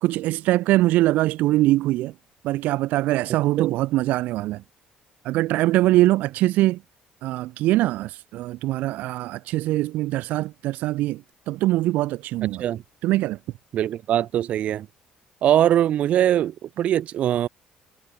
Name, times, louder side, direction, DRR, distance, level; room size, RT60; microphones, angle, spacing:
voice 1, 0.0-2.1 2.4-4.6 5.2-6.8 7.2-12.7 13.0-13.4, right 17 dB, 80° right, 0.8 m, -22 dB
voice 2, 13.7-14.9 15.4-17.5, right 11 dB, 55° right, 1.4 m, -21 dB
cardioid pair, 145°, 3 cm